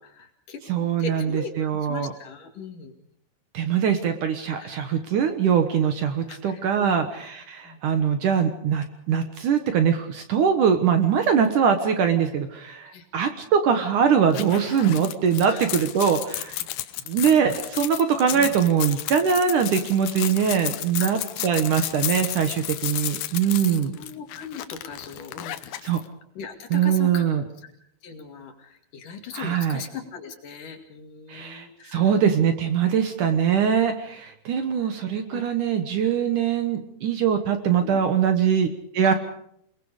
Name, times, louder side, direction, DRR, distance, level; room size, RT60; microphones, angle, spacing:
voice 1, 0.0-0.6 1.0-2.9 4.6-5.1 6.3-7.1 7.6-7.8 12.9-13.1 15.5-15.6 18.3-18.5 21.0-21.1 21.9-22.0 23.4-25.9 26.4-27.7 28.0-32.1 34.5-34.9 35.3-35.4 37.8-38.0 39.0-39.1, left 5 dB, 55° left, 4 dB, 3.6 m, -39 dB
voice 2, 0.7-2.1 3.5-16.6 17.1-24.0 25.8-26.0 26.7-27.4 29.3-29.8 31.3-31.7 31.9-38.7 38.9-39.1, right 7 dB, 60° right, 7 dB, 2.5 m, -22 dB
sound 1, 14.3-26.0, left 14 dB, 75° left, 2.7 m, -33 dB
28.5 x 20.5 x 5.0 m, 0.70 s
omnidirectional pair, 4.6 m